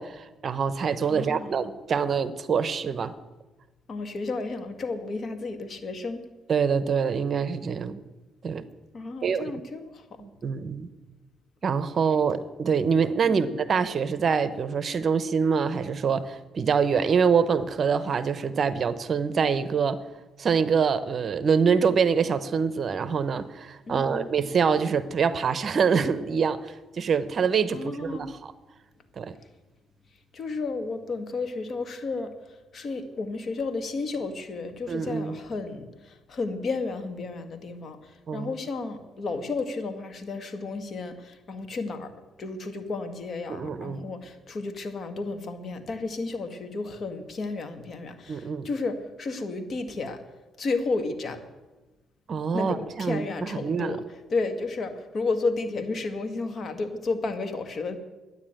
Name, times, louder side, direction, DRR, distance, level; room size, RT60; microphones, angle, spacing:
voice 1, 0.0-3.1 6.5-8.0 8.4-8.6 9.2-9.5 10.2-10.9 11.6-20.0 20.4-28.5 29.2-29.3 34.9-35.3 38.3-38.5 43.5-44.0 48.3-48.7 52.3-53.9, right 6 dB, 50° right, 14 dB, 0.9 m, -25 dB
voice 2, 1.1-1.6 3.9-6.2 8.9-10.2 13.3-13.5 23.9-24.3 27.7-28.3 30.3-42.1 42.4-50.2 50.6-51.4 52.5-54.0 54.3-58.0, left 3 dB, 50° left, 7 dB, 1.8 m, -32 dB
12.0 x 9.8 x 8.9 m, 1.2 s
cardioid pair, 90°, 0 cm